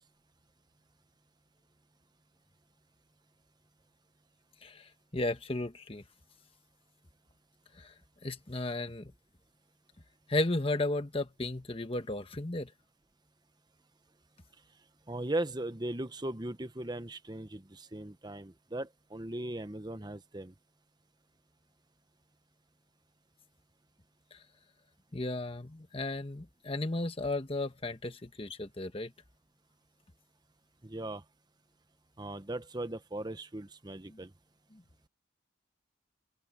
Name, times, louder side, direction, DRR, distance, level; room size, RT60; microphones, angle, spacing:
voice 1, 4.6-6.0 7.8-7.9 8.2-9.1 10.3-12.7 24.3-24.4 25.1-29.1 34.1-34.2 34.7-34.8, left 2 dB, 30° left, 1.3 m, -34 dB
voice 2, 15.1-20.5 30.8-31.2 32.2-34.3, right 1 dB, 20° right, 1.0 m, -38 dB
open air
head